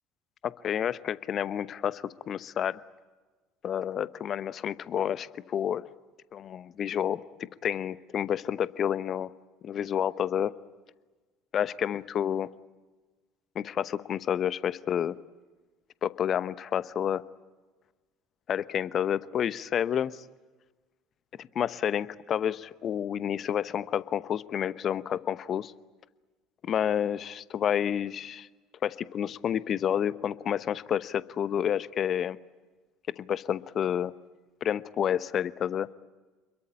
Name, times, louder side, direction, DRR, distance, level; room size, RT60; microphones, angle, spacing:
voice 1, 0.4-2.8 3.6-5.8 6.3-9.3 9.6-10.5 11.5-12.5 13.5-15.2 16.0-17.2 18.5-20.2 21.4-25.7 26.6-28.5 28.8-32.4 33.2-34.1 34.6-35.9, left 9 dB, 45° left, 17 dB, 0.9 m, -29 dB
28.0 x 22.0 x 8.8 m, 1.3 s
figure-of-eight pair, 65°, 0 cm